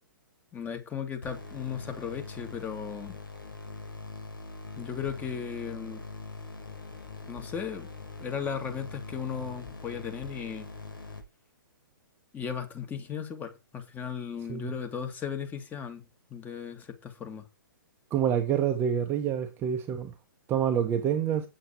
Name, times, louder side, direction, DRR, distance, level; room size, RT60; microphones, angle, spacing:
voice 1, 0.5-3.2 4.8-6.0 7.3-7.9 8.2-10.7 12.3-16.0 16.3-17.5, left 7 dB, 15° left, 2.0 m, -36 dB
sound 1, 1.2-11.2, left 3 dB, 75° left, 4.9 m, -43 dB
voice 2, 18.1-20.1 20.5-21.4, right 9 dB, 20° right, 1.0 m, -27 dB
8.6 x 7.8 x 4.4 m
figure-of-eight pair, 120°, 11 cm